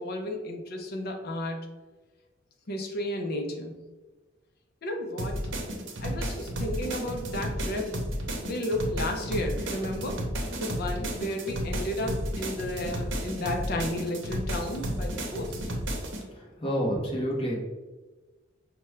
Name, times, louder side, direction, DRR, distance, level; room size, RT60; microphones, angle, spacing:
voice 1, 0.0-1.7 2.7-3.8 4.8-5.4 6.0-8.0 8.4-10.2 10.6-15.7, left 1 dB, 50° left, 3 dB, 0.6 m, -33 dB
sound 1, 5.2-16.2, right 1 dB, 70° right, 0.7 m, -33 dB
voice 2, 15.3-15.6 16.3-17.6, equal, 30° left, -3 dB, 0.9 m, -30 dB
5.0 x 2.2 x 3.2 m, 1.2 s
head